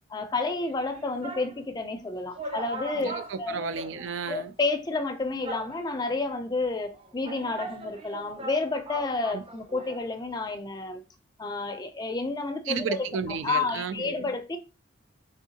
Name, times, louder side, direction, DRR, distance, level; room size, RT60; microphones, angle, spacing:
voice 1, 0.1-3.6 4.3-11.0 11.4-13.0 13.4-14.6, left 3 dB, 20° left, 0.4 m, -30 dB
sound 1, 0.6-1.6 2.0-2.1 2.3-4.4 4.7-4.8 5.4-6.1 6.9-10.1 10.3-10.4, right 2 dB, 30° right, 0.6 m, -40 dB
voice 2, 3.0-4.5 9.3-9.4 12.7-14.3, right 6 dB, 75° right, 0.4 m, -33 dB
3.6 x 3.4 x 2.8 m
head